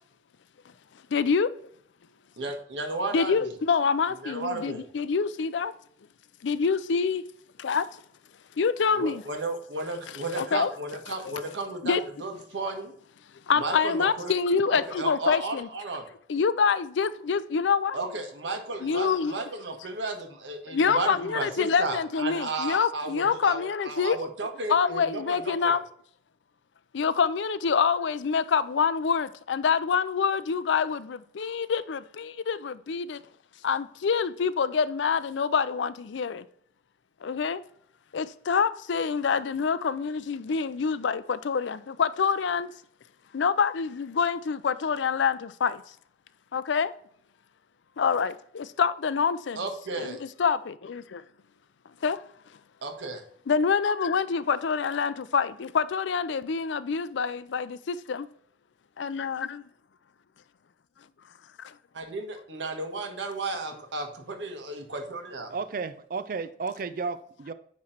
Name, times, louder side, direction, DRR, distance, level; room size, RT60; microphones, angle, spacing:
voice 1, 1.1-1.5 3.1-5.7 6.4-7.2 7.6-7.9 8.6-9.2 10.3-10.7 11.3-11.4 11.8-12.0 13.5-15.7 16.3-18.0 18.8-19.3 20.7-24.2 24.7-25.8 26.9-33.2 33.6-36.4 37.2-37.6 38.1-42.7 43.3-45.8 46.5-46.9 48.0-49.6 50.0-51.2 52.0-52.2 53.5-58.3 59.0-59.6 61.6-61.7, left 6 dB, 85° left, 0.4 m, -26 dB
voice 2, 2.4-3.4 4.2-4.8 8.9-12.9 13.6-14.3 14.7-16.0 17.9-25.7 49.5-50.2 52.8-53.2 61.9-65.5, right 2 dB, 85° right, 1.4 m, -34 dB
voice 3, 65.5-67.5, right 4 dB, 50° right, 0.4 m, -33 dB
9.4 x 3.2 x 4.3 m
head